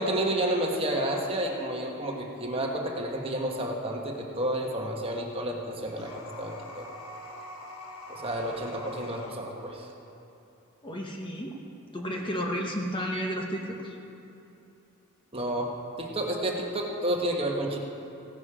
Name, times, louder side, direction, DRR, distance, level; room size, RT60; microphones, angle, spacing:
voice 1, 0.0-6.9 8.1-9.9 15.3-17.8, right 1 dB, 25° right, 0 dB, 1.3 m, -30 dB
sound 1, 5.9-9.4, left 1 dB, 75° left, 1.2 m, -43 dB
voice 2, 10.8-11.6 11.9-14.0, equal, 20° left, 0 dB, 1.0 m, -32 dB
16.5 x 10.5 x 4.9 m, 2.8 s
head